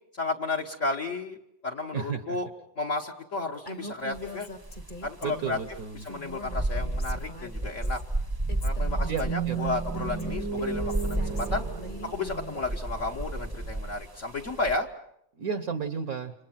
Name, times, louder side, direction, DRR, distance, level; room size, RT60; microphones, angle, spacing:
voice 1, 0.1-1.4 1.6-2.5 2.8-4.5 5.0-5.6 6.0-8.0 8.6-11.6 12.1-14.9, left 3 dB, 45° left, 5 dB, 1.7 m, -32 dB
voice 2, 1.9-2.4 5.2-6.0 9.1-9.6 15.3-16.3, right 6 dB, 55° right, 9 dB, 1.5 m, -33 dB
Female speech woman speaking, 3.7-5.6 6.0-8.0 8.5-12.6, equal, 30° left, 1.5 m, -43 dB
sound 1, 4.1-4.3 4.6-14.8, right 2 dB, 15° right, 1.1 m, -33 dB
sound 2, 9.0-13.1, right 6 dB, 75° right, 2.4 m, -34 dB
29.0 x 25.5 x 5.9 m, 0.76 s
omnidirectional pair, 2.0 m